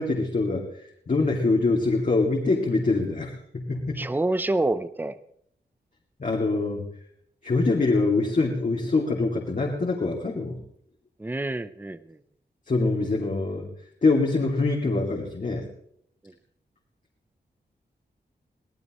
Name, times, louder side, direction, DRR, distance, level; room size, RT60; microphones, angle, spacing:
voice 1, 0.0-4.0 6.2-6.8 7.4-10.6 12.7-13.7 14.0-15.6, left 3 dB, 45° left, -2 dB, 2.5 m, -24 dB
voice 2, 4.0-5.2 11.2-12.2, right 2 dB, 10° right, 13 dB, 0.6 m, -27 dB
23.5 x 18.0 x 3.1 m, 0.68 s
wide cardioid pair, 155°, 18 cm